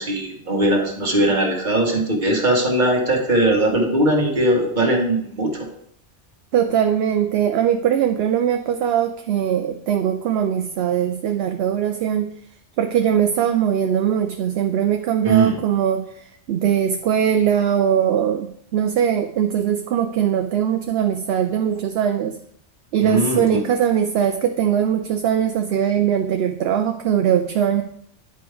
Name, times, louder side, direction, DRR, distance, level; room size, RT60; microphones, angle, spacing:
voice 1, 0.0-5.5 15.2-15.6 23.0-23.6, right 1 dB, 40° right, 0 dB, 1.5 m, -19 dB
voice 2, 6.5-12.3 12.8-16.0 16.5-22.4 22.9-27.8, right 9 dB, 65° right, 6 dB, 0.7 m, -20 dB
10.0 x 5.1 x 3.4 m, 0.69 s
omnidirectional pair, 1.2 m